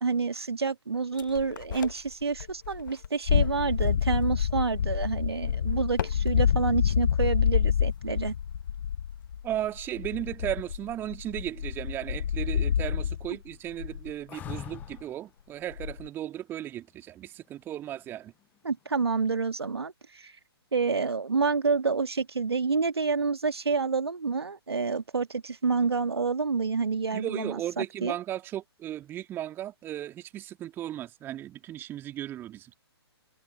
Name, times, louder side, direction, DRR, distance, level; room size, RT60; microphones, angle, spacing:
voice 1, 0.0-8.3 18.6-20.3 20.7-28.1, right 4 dB, 70° right, 1.9 m, -28 dB
sound 1, 1.2-2.1 2.4-13.3 13.7-14.1 14.4-15.0 15.7-16.1, left 8 dB, 50° left, 1.4 m, -28 dB
voice 2, 9.4-18.3 27.1-32.7, right 12 dB, 15° right, 2.5 m, -36 dB
sound 2, 14.3-15.2 17.8-18.4, left 11 dB, 10° left, 0.7 m, -41 dB
figure-of-eight pair, 130°, 14 cm